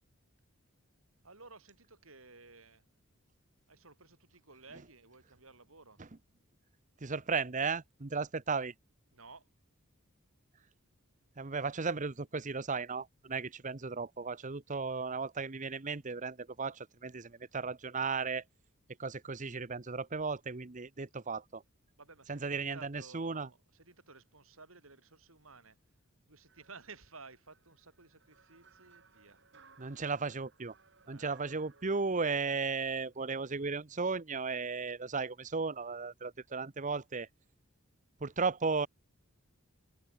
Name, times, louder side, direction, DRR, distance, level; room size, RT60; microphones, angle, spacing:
voice 1, 1.2-2.8 3.7-6.0 9.1-9.5 21.9-25.8 26.3-29.4 31.0-31.4, right 4 dB, 75° right, 7.1 m, -55 dB
voice 2, 7.0-8.7 11.4-18.4 19.0-21.6 22.3-23.5 29.8-30.7 31.1-37.3 38.2-38.9, right 4 dB, 35° right, 0.9 m, -35 dB
sound 1, 26.5-33.6, right 5 dB, 55° right, 7.1 m, -64 dB
head